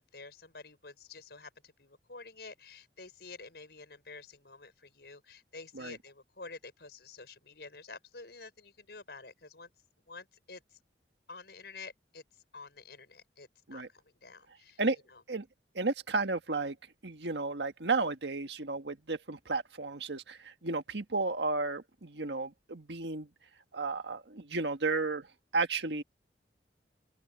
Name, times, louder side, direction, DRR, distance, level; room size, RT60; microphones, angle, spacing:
voice 1, 0.0-9.7 10.1-10.8 11.3-12.2 12.5-14.8 15.1-15.2, left 4 dB, 65° left, 5.2 m, -49 dB
voice 2, 15.8-16.8 17.0-23.3 23.7-25.3 25.5-26.0, right 3 dB, 80° right, 1.6 m, -33 dB
open air
head